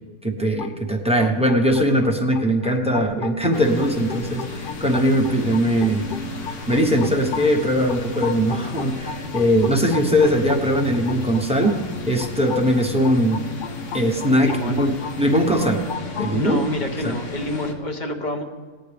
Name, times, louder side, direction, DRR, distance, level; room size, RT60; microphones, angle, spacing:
voice 1, 0.2-6.2 6.7-11.8 12.1-13.4 13.9-15.8 16.2-16.6 17.0-17.2, equal, 5° right, 1 dB, 0.8 m, -20 dB
sound 1, 0.6-16.4, left 6 dB, 90° left, 0.4 m, -36 dB
sound 2, 3.5-17.7, left 2 dB, 60° left, 1.3 m, -35 dB
voice 2, 14.4-14.9 16.3-18.4, left 1 dB, 35° left, 4 dB, 1.0 m, -27 dB
19.0 x 9.3 x 3.4 m, 1.4 s
omnidirectional pair, 1.6 m